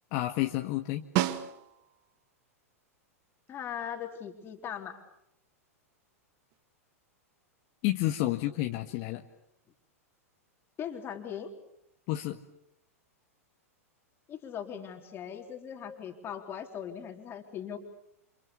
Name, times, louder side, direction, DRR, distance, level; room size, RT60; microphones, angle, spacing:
voice 1, 0.1-1.1 7.8-9.2 12.1-12.4, left 16 dB, 45° left, 4 dB, 1.5 m, -30 dB
Snare drum, 1.2-2.1 6.5-6.6, right 14 dB, 45° right, 1.8 m, -30 dB
voice 2, 3.5-5.0 10.8-11.5 14.3-17.8, left 8 dB, 30° left, 3 dB, 3.7 m, -39 dB
29.5 x 28.0 x 7.1 m, 0.79 s
figure-of-eight pair, 100°, 8 cm